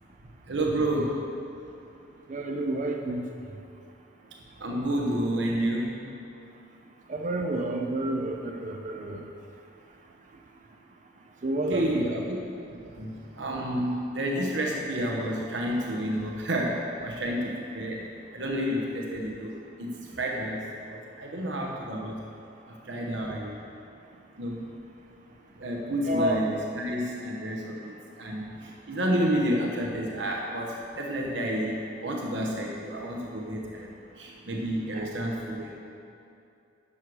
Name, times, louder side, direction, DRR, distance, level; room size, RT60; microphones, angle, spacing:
voice 1, 0.5-1.2 4.6-6.0 11.7-12.4 12.7-18.0 18.3-20.6 20.9-22.3 22.7-23.6 24.4-24.7 25.6-35.8, equal, 75° right, -1 dB, 1.0 m, -30 dB
voice 2, 2.3-3.3 7.1-9.3 11.4-12.1 26.1-26.5 28.6-28.7 34.9-35.1, right 1 dB, 40° right, 2 dB, 0.5 m, -30 dB
11.0 x 6.3 x 4.7 m, 2.7 s
head